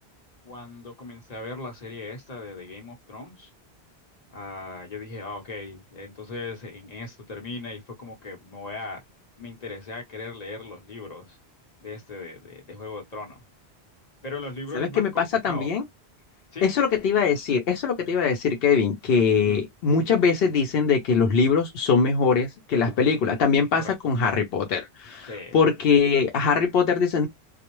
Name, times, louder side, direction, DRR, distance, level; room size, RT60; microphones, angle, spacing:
voice 1, 0.4-3.5 4.3-9.0 9.4-11.4 11.8-13.4 14.2-15.7 16.5-16.7 19.3-19.7 23.8-23.9 25.3-25.6, left 3 dB, 40° left, 1.0 m, -38 dB
voice 2, 14.7-15.8 16.6-27.3, left 5 dB, 65° left, 0.8 m, -22 dB
2.4 x 2.0 x 3.0 m
omnidirectional pair, 1.1 m